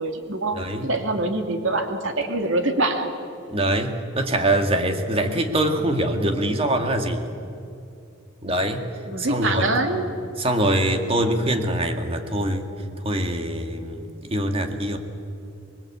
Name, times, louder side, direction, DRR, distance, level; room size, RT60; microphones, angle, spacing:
voice 1, 0.0-3.1 9.1-10.1, right 2 dB, 75° right, 5 dB, 2.6 m, -24 dB
voice 2, 0.5-0.9 3.5-7.3 8.4-8.9 9.2-9.8 10.4-12.7 13.0-15.0, right 1 dB, 30° right, 5 dB, 2.0 m, -23 dB
25.0 x 22.0 x 8.5 m, 2.6 s
head